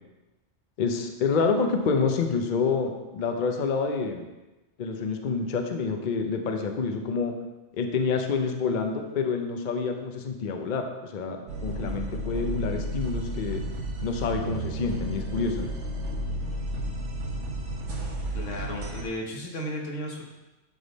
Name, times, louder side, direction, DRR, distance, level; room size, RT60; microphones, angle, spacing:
voice 1, 0.8-4.3 4.8-7.3 7.7-13.6 14.0-15.7, left 5 dB, 50° left, 4 dB, 0.7 m, -28 dB
sound 1, 11.5-19.0, right 1 dB, 70° right, 1.3 m, -32 dB
voice 2, 18.3-20.2, equal, 80° left, 0 dB, 1.5 m, -34 dB
10.0 x 3.6 x 4.0 m, 1.1 s
omnidirectional pair, 1.3 m